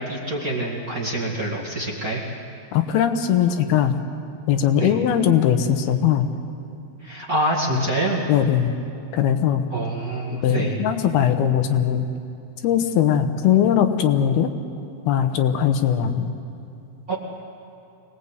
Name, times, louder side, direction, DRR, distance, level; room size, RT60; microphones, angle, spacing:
voice 1, 0.0-2.2 4.8-4.9 7.0-8.2 9.7-10.8 17.1-17.2, right 1 dB, 30° right, -3 dB, 1.8 m, -26 dB
voice 2, 2.7-4.0 4.5-6.3 7.7-7.8 8.3-8.7 9.1-9.6 10.3-12.1 12.6-14.5 15.1-16.4, left 9 dB, 85° left, 8 dB, 3.0 m, -20 dB
25.5 x 19.0 x 8.1 m, 2.7 s
omnidirectional pair, 4.4 m